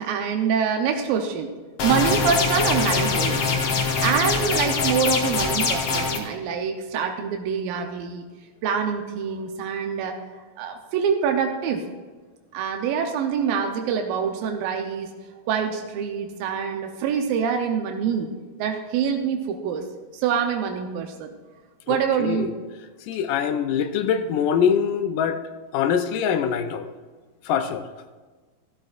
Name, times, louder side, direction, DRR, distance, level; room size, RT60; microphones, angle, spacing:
voice 1, 0.0-1.5 1.8-3.5 4.0-8.3 8.6-11.8 12.5-15.1 15.5-18.3 18.6-19.8 20.1-21.3 21.9-22.5, right 7 dB, 85° right, 4 dB, 2.5 m, -25 dB
sound 1, 1.8-6.2, left 4 dB, 60° left, 1.7 m, -23 dB
voice 2, 21.9-22.5 23.1-25.4 25.7-26.9 27.5-27.8, left 7 dB, 75° left, 7 dB, 2.1 m, -23 dB
15.0 x 13.0 x 2.4 m, 1.4 s
omnidirectional pair, 4.1 m